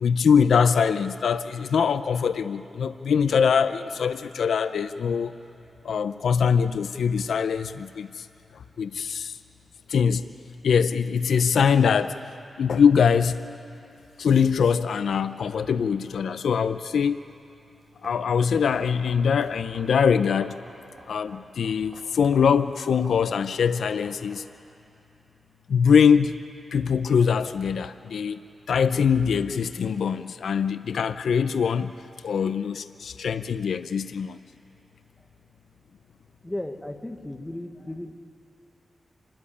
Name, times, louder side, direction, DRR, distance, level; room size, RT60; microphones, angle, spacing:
voice 1, 0.0-5.3 5.8-8.3 8.8-9.4 9.9-10.2 10.6-12.1 12.6-13.4 14.2-17.2 18.0-20.6 21.1-24.4 25.7-26.4 26.7-28.4 28.7-31.9 32.2-34.4, left 6 dB, 85° left, 12 dB, 0.6 m, -22 dB
sound 1, 17.2-24.6, equal, 25° right, 5.6 m, -50 dB
voice 2, 36.4-38.1, left 1 dB, 10° left, 5 dB, 1.2 m, -35 dB
27.0 x 13.5 x 10.0 m, 2.8 s
wide cardioid pair, 160°, 0 cm